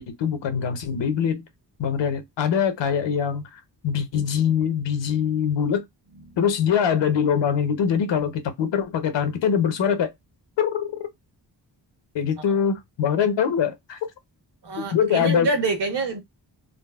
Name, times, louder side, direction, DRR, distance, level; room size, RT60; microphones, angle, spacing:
voice 1, 0.0-1.5 1.8-3.5 3.8-5.8 6.4-10.1 10.6-10.9 12.1-14.0 14.9-15.5, left 7 dB, 85° left, 0.8 m, -23 dB
voice 2, 14.6-16.2, right 3 dB, 65° right, 1.1 m, -27 dB
3.7 x 2.0 x 2.3 m
wide cardioid pair, 130°, 43 cm